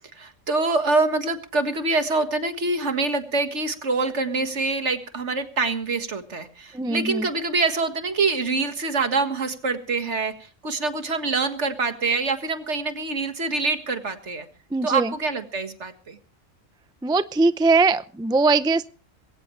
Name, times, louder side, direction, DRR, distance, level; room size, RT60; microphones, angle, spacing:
voice 1, 0.2-14.5 14.8-16.2, right 3 dB, 70° right, 8 dB, 2.1 m, -25 dB
voice 2, 6.7-7.3 14.7-15.1 17.0-18.9, right 3 dB, 5° right, 13 dB, 0.3 m, -21 dB
21.0 x 17.0 x 3.3 m, 0.37 s
omnidirectional pair, 1.3 m